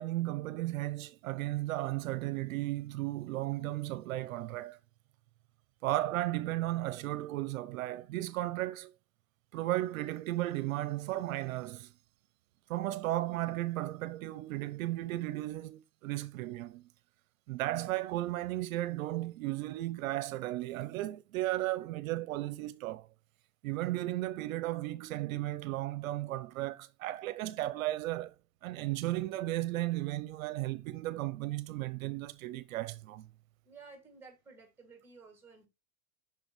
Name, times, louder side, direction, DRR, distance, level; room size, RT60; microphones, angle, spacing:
voice 1, 0.0-4.8 5.8-8.9 9.5-11.9 12.7-16.8 17.5-23.1 23.6-28.3 28.6-33.3, right 16 dB, 75° right, 0.6 m, -35 dB
voice 2, 33.6-35.7, right 4 dB, 5° right, 2.5 m, -54 dB
6.9 x 6.0 x 3.1 m
supercardioid pair, 140°, 41 cm